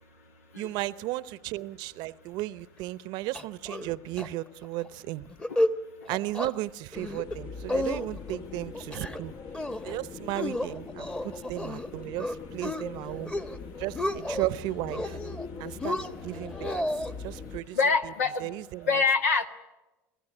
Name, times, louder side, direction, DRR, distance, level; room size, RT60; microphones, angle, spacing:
voice 1, 0.5-5.3 6.1-9.3 9.8-13.3 13.8-15.2 15.6-16.0 16.2-16.7 17.2-17.8 18.0-18.1 18.4-19.0, right 17 dB, 65° right, 17 dB, 0.8 m, -34 dB
sound 1, 3.3-3.9 4.2-4.3 4.6-4.9 5.3-5.8 6.1-6.5 6.9-7.4 7.7-8.4 8.7-9.2 9.5-9.9 10.4-11.9 12.2-12.8 13.2-13.6 13.8-14.5 14.9-15.5 15.8-17.1, left 1 dB, 15° left, 1.2 m, -31 dB
sound 2, 6.9-17.6, left 4 dB, 55° left, 1.5 m, -42 dB
voice 2, 17.7-18.5 18.9-19.5, left 4 dB, 85° left, 6 dB, 1.7 m, -25 dB
26.0 x 15.5 x 9.9 m, 1.1 s
hypercardioid pair, 80°, 8 cm